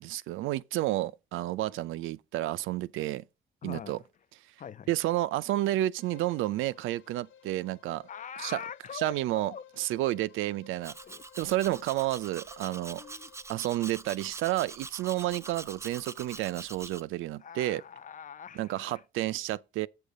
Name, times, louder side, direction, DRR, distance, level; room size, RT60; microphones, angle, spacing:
voice 1, 0.0-3.2 3.6-4.0 4.9-8.0 8.4-8.6 8.9-10.9 11.4-13.0 13.5-17.8 18.6-19.9, right 15 dB, 90° right, 0.5 m, -31 dB
voice 2, 3.6-4.0 4.6-4.9 8.1-9.6 10.0-10.2 11.0-11.2 12.9-13.3 17.4-19.0, left 8 dB, 40° left, 0.5 m, -43 dB
Bowed string instrument, 5.9-13.6, left 9 dB, 80° left, 1.4 m, -56 dB
Domestic sounds home sounds, 10.8-17.0, right 3 dB, 15° right, 0.5 m, -45 dB
7.0 x 6.9 x 5.0 m
cardioid pair, 90°, 20 cm